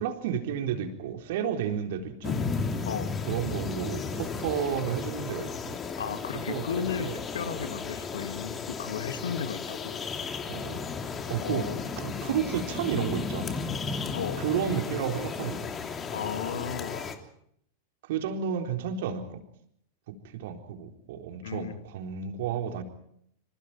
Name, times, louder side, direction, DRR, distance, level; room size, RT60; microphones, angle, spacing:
voice 1, 0.0-2.6 3.3-5.8 6.5-7.2 7.5-7.7 10.5-10.8 11.3-13.7 14.4-15.7 18.1-19.4 20.1-22.8, right 8 dB, 55° right, 5 dB, 4.0 m, -32 dB
sound 1, 2.2-17.1, left 5 dB, 20° left, 3.0 m, -34 dB
voice 2, 2.8-3.2 6.0-10.0 11.4-11.9 14.1-14.4 16.1-17.1 21.4-21.8, left 7 dB, 65° left, 10 dB, 2.3 m, -35 dB
27.5 x 27.0 x 4.6 m, 0.69 s
figure-of-eight pair, 90°, 0 cm